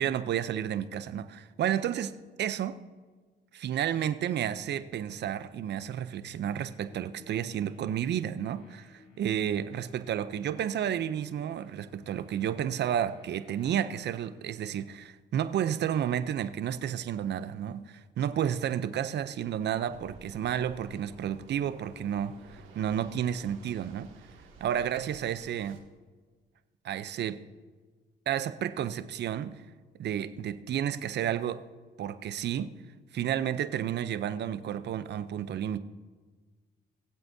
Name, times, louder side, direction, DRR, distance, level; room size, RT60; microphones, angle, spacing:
voice 1, 0.0-2.8 3.5-24.1 24.6-25.8 26.8-27.4 28.3-29.6 30.0-31.7 32.0-32.8 33.1-35.8, right 9 dB, 60° right, 0.6 m, -31 dB
sound 1, 6.5-14.4, left 2 dB, 90° left, 3.1 m, -57 dB
Waves surf, 19.8-25.8, right 3 dB, 80° right, 2.2 m, -53 dB
21.0 x 7.9 x 2.7 m
cardioid pair, 90°, 20 cm